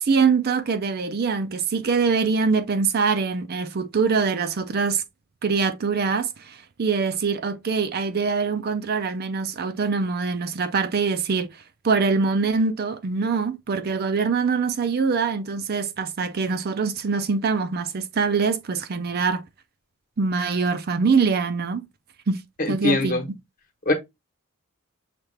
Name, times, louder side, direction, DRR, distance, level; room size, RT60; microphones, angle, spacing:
voice 1, 0.0-5.0 5.4-11.5 11.8-19.4 20.2-21.9 22.3-22.4 22.7-23.2, right 5 dB, 45° right, 0.5 m, -23 dB
voice 2, 22.6-23.2 23.9-24.0, left 2 dB, 40° left, 1.1 m, -22 dB
5.8 x 2.4 x 3.1 m
head